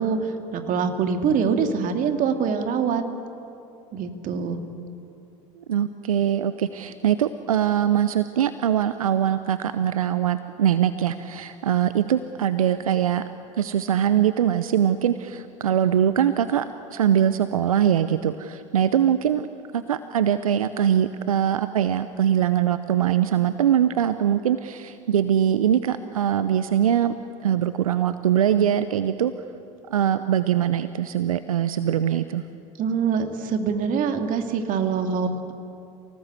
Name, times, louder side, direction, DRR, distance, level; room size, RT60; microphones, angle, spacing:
voice 1, 0.0-3.0 3.9-4.6 32.8-35.5, right 6 dB, 50° right, 6 dB, 2.6 m, -24 dB
voice 2, 5.6-13.3 13.6-19.5 19.7-27.1 27.4-29.3 29.9-32.4, right 10 dB, 85° right, 12 dB, 0.7 m, -22 dB
29.5 x 18.5 x 8.3 m, 2.7 s
hypercardioid pair, 75°, 18 cm